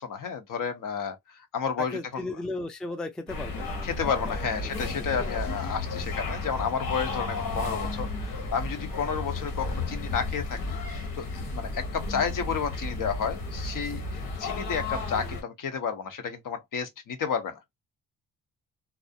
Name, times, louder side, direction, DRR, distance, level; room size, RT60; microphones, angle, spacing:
voice 1, 0.0-2.0 3.8-17.6, left 6 dB, 60° left, 0.8 m, -31 dB
voice 2, 1.8-5.3, left 2 dB, ahead, 0.3 m, -37 dB
sound 1, 3.3-15.4, left 2 dB, 80° left, 1.2 m, -33 dB
2.4 x 2.0 x 2.6 m
cardioid pair, 85°, 35 cm